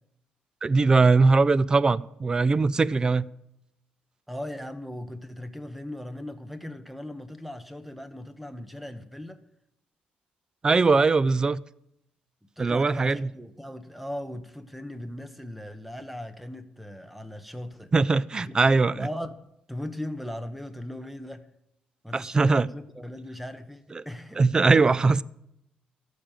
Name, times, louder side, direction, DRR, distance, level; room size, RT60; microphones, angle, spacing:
voice 1, 0.6-3.3 10.6-11.6 12.6-13.3 17.9-19.1 22.1-22.7 23.9-24.0 24.4-25.2, right 4 dB, 25° right, 0.4 m, -21 dB
voice 2, 4.3-9.4 12.6-17.9 18.4-19.4 19.7-21.4 22.0-24.5, left 1 dB, 5° right, 1.0 m, -38 dB
14.0 x 5.2 x 9.0 m
cardioid pair, 110°, 3 cm